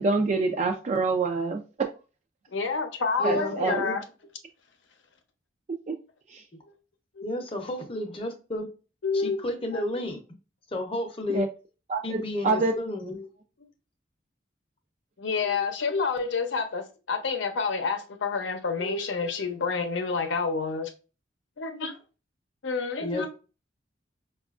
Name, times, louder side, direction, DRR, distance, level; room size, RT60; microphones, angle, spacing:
voice 1, 0.0-1.9 3.2-3.8 5.7-6.0 6.3-6.4 11.3-11.5 11.9-12.7, right 3 dB, 40° right, 0.3 m, -26 dB
voice 2, 2.5-4.0 7.2-7.3 9.0-9.4 9.7-10.0 13.1-13.3 15.2-20.9 21.6-22.0 22.6-23.3, left 4 dB, 80° left, 0.6 m, -29 dB
voice 3, 3.2-4.0 7.2-8.7 9.1-10.2 10.7-11.4 12.0-13.2 23.0-23.3, left 1 dB, 30° left, 0.7 m, -31 dB
5.0 x 2.4 x 2.4 m
head